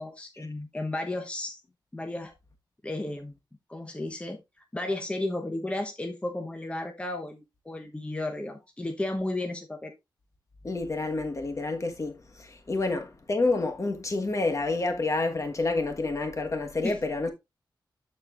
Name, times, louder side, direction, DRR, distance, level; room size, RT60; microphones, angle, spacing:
voice 1, 0.0-1.6 1.9-2.3 2.8-3.3 3.7-4.4 4.7-9.9 16.8-17.0, left 2 dB, 15° left, 0.9 m, -33 dB
voice 2, 10.6-17.3, left 3 dB, 40° left, 1.3 m, -29 dB
13.0 x 4.4 x 2.4 m
wide cardioid pair, 85°, 8 cm